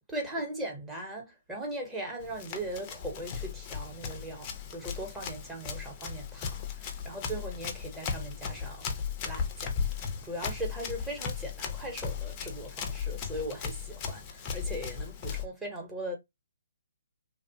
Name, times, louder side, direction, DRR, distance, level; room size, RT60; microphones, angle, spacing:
voice 1, 0.1-8.9 9.2-16.2, right 1 dB, 10° right, 0.8 m, -39 dB
Run, 2.2-15.4, left 6 dB, 25° left, 0.5 m, -36 dB
2.8 x 2.1 x 2.6 m
hypercardioid pair, 155°, 0 cm